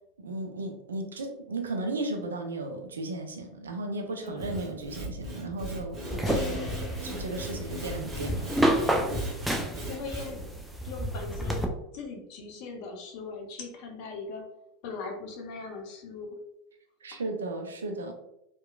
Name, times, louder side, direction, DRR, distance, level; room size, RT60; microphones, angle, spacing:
voice 1, 0.2-6.8 7.0-8.7 17.0-18.1, right 2 dB, 80° right, 4 dB, 0.4 m, -35 dB
Sawing / Wood, 4.3-10.5, right 1 dB, 30° right, 0.9 m, -38 dB
sound 1, 6.1-11.7, equal, 5° right, 0.4 m, -30 dB
sound 2, 6.3-8.5, equal, 15° left, 0.9 m, -41 dB
voice 2, 9.9-10.4 10.8-11.7 11.9-14.4 14.8-16.4, left 4 dB, 55° left, 1 dB, 0.6 m, -39 dB
2.9 x 2.2 x 2.3 m, 0.85 s
figure-of-eight pair, 85°, 0 cm